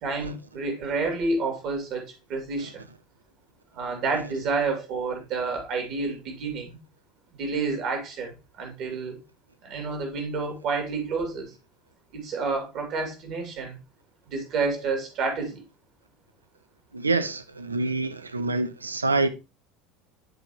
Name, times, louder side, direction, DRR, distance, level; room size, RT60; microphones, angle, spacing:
voice 1, 0.0-2.9 3.7-6.8 7.4-9.2 9.6-11.5 12.1-13.8 14.3-15.6, right 4 dB, 45° right, 2.4 m, -29 dB
voice 2, 16.9-19.3, right 3 dB, 80° right, 0.6 m, -26 dB
10.0 x 4.2 x 2.9 m
figure-of-eight pair, 70°, 0 cm